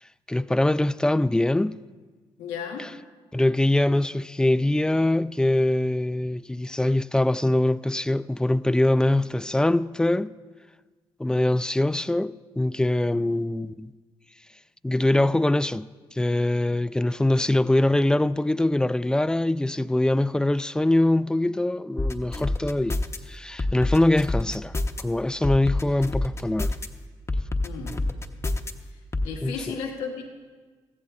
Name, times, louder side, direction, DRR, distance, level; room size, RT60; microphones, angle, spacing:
voice 1, 0.3-1.8 2.8-2.9 3.3-10.3 11.2-13.9 14.8-23.0 23.3-24.7 25.0-26.7 29.4-29.6, left 1 dB, 5° left, 0.4 m, -23 dB
voice 2, 2.4-2.9 27.6-28.0 28.9-30.2, left 6 dB, 90° left, 1.3 m, -34 dB
sound 1, 22.0-23.2 23.6-25.0 25.4-26.9 27.3-28.7 29.1-29.3, left 2 dB, 25° left, 0.9 m, -26 dB
20.5 x 14.5 x 2.5 m
supercardioid pair, 50°, 11 cm